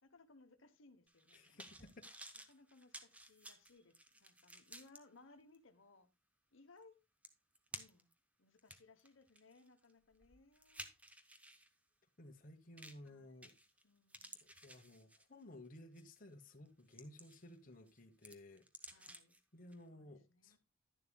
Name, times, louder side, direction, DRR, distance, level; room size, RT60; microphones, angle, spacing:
voice 1, 0.0-1.9 2.5-6.1 6.5-7.0 7.7-8.1 8.4-10.9 13.0-14.4 18.9-19.4 19.9-20.6, left 3 dB, 80° left, 1.0 m, -65 dB
sound 1, 1.1-5.0 5.5-5.6 6.8-6.9 7.2-8.1 8.6-11.7 12.8-13.1 13.4-13.8 14.1-15.4 16.0-16.2 16.7-17.5 17.9-19.4 19.7-19.8, right 1 dB, 5° right, 0.7 m, -55 dB
voice 2, 1.3-2.1 12.2-13.5 14.4-19.0 19.5-20.6, left 1 dB, 40° left, 1.1 m, -57 dB
11.0 x 10.5 x 2.3 m
head